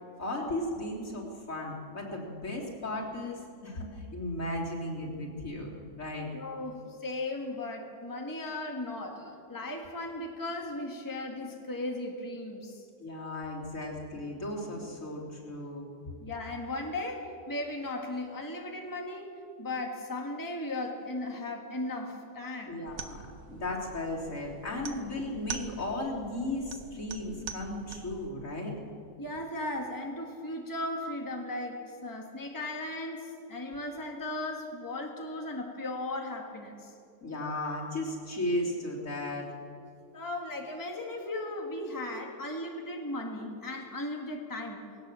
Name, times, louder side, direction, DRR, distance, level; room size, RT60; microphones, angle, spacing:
voice 1, 0.2-6.3 13.0-15.9 22.7-23.2 23.5-28.8 37.2-39.5, left 1 dB, 60° left, -3 dB, 3.9 m, -35 dB
voice 2, 6.3-12.9 16.2-19.3 19.6-22.7 29.2-36.9 40.1-44.8, left 2 dB, 15° left, 1 dB, 1.9 m, -36 dB
sound 1, 22.9-28.3, right 6 dB, 70° right, 1.5 m, -44 dB
20.0 x 18.0 x 7.6 m, 2.5 s
omnidirectional pair, 1.6 m